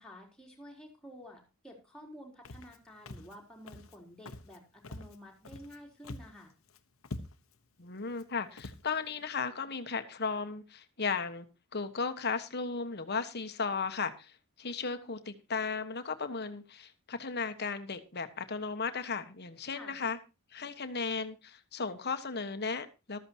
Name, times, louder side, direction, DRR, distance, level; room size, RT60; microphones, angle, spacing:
voice 1, 0.0-6.5 19.7-20.0, equal, 5° left, -1 dB, 4.0 m, -51 dB
Walk footsteps, 2.4-2.8 3.1-3.4 3.7-4.0 4.3-4.6 4.8-5.8 6.0-6.4 6.7-6.8 7.0-7.6 8.1-8.2 8.6-8.8, left 2 dB, 70° left, 1.2 m, -45 dB
voice 2, 7.8-11.5 11.7-20.2 20.5-23.2, left 5 dB, 50° left, 9 dB, 1.3 m, -35 dB
14.0 x 13.5 x 2.9 m, 0.29 s
head